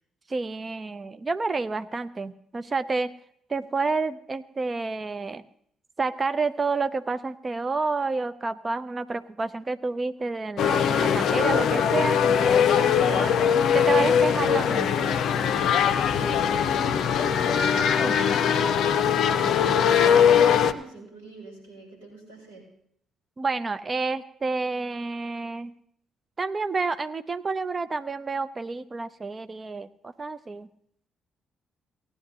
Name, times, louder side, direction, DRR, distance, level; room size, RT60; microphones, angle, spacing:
voice 1, 0.3-3.1 3.5-5.4 6.0-13.4 13.7-15.4 18.0-18.3 23.4-25.7 26.4-30.7, right 3 dB, 30° right, 12 dB, 0.6 m, -29 dB
sound 1, 10.6-20.7, left 8 dB, 55° left, 0.5 m, -21 dB
voice 2, 16.0-19.8 20.2-22.7, right 1 dB, 75° right, -4 dB, 4.9 m, -42 dB
17.5 x 10.0 x 2.8 m, 0.69 s
figure-of-eight pair, 45°, 0 cm